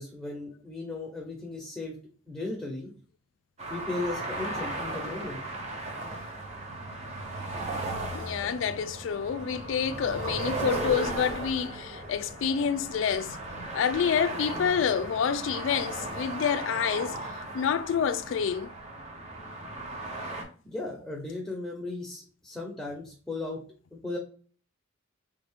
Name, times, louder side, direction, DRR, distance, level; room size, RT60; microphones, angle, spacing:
voice 1, 0.0-2.0 2.3-2.9 3.7-5.4 20.6-23.6 23.9-24.2, left 2 dB, 5° left, 0.7 m, -36 dB
sound 1, 3.6-20.4, right 2 dB, 35° right, 0.8 m, -36 dB
voice 2, 8.1-13.4 13.7-17.2 17.5-18.7, left 7 dB, 70° left, 0.3 m, -28 dB
3.4 x 2.4 x 3.5 m
head